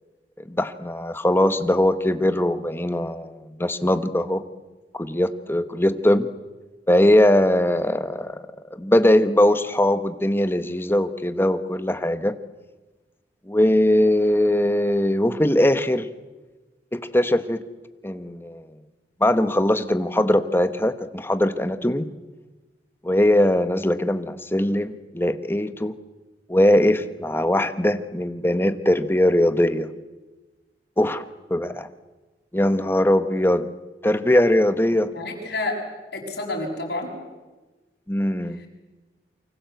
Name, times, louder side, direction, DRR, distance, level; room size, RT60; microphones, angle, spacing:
voice 1, 0.5-4.4 4.9-6.3 6.9-8.4 8.7-12.3 13.5-16.1 16.9-17.6 18.0-18.6 19.2-22.1 23.0-25.9 26.5-29.9 31.0-31.2 31.5-31.9 32.5-33.7 34.0-35.1 38.1-38.6, left 1 dB, 15° left, 11 dB, 1.1 m, -20 dB
voice 2, 35.1-35.8 36.1-37.1 38.5-38.7, left 2 dB, 60° left, 1 dB, 7.0 m, -29 dB
28.5 x 24.5 x 8.1 m, 1.2 s
head